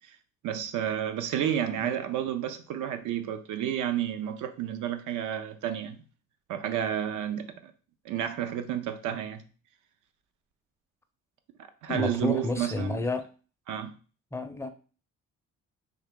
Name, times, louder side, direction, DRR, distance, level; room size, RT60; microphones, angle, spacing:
voice 1, 0.4-6.0 6.5-7.7 8.0-9.4 11.8-13.0 13.7-13.9, right 10 dB, 80° right, 0.6 m, -31 dB
voice 2, 11.9-13.2 14.3-14.7, left 3 dB, 10° left, 0.5 m, -31 dB
3.6 x 2.7 x 3.6 m
cardioid pair, 90°, 30 cm